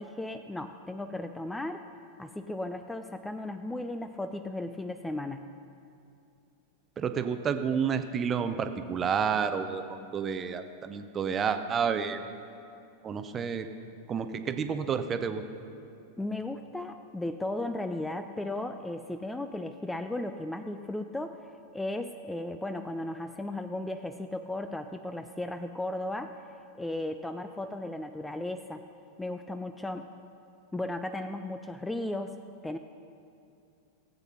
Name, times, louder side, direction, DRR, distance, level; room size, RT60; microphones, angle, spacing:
voice 1, 0.0-1.8 2.2-5.5 16.2-26.4 26.8-28.8 29.2-30.1 30.7-32.4 32.6-32.8, left 1 dB, 5° left, 8 dB, 0.4 m, -35 dB
voice 2, 7.0-12.2 13.0-13.7 14.1-15.4, right 6 dB, 25° right, 9 dB, 0.7 m, -30 dB
17.0 x 8.3 x 5.7 m, 2.6 s
figure-of-eight pair, 90°, 0 cm